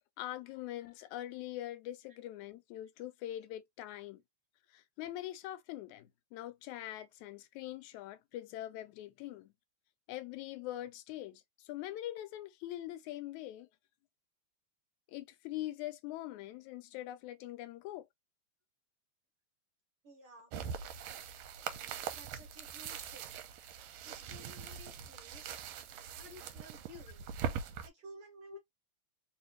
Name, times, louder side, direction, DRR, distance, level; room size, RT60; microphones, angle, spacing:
voice 1, 0.2-4.2 4.7-9.5 10.1-13.7 15.1-18.1 28.5-28.6, left 14 dB, 85° left, 2.0 m, -43 dB
voice 2, 20.0-20.5 22.1-23.3 24.0-25.6 26.1-27.3 27.8-28.6, equal, 60° right, 1.6 m, -54 dB
sound 1, 20.5-27.9, right 7 dB, 80° right, 1.9 m, -42 dB
4.4 x 2.6 x 3.1 m
omnidirectional pair, 3.3 m